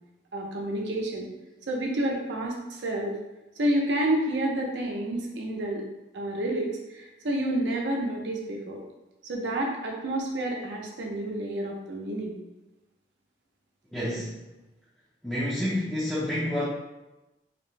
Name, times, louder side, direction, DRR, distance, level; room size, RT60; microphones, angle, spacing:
voice 1, 0.3-1.3 1.7-3.2 3.6-5.8 6.1-8.8 9.2-12.4, right 1 dB, 90° right, -1 dB, 0.6 m, -29 dB
voice 2, 13.9-14.4 15.2-16.6, left 1 dB, 5° left, -8 dB, 0.4 m, -29 dB
2.8 x 2.0 x 3.2 m, 1.0 s
head